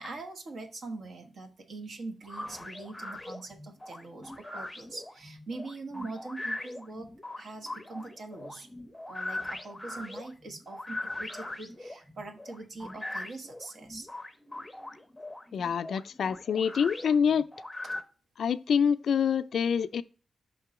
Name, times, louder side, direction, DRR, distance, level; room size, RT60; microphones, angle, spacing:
voice 1, 0.0-7.1 7.4-8.7 9.1-14.1, right 3 dB, 65° right, 1.1 m, -42 dB
sound 1, 2.2-18.0, left 1 dB, 10° left, 0.6 m, -41 dB
voice 2, 15.5-17.5 18.4-20.0, left 7 dB, 80° left, 0.3 m, -26 dB
5.4 x 3.7 x 5.7 m
wide cardioid pair, 115°, 0 cm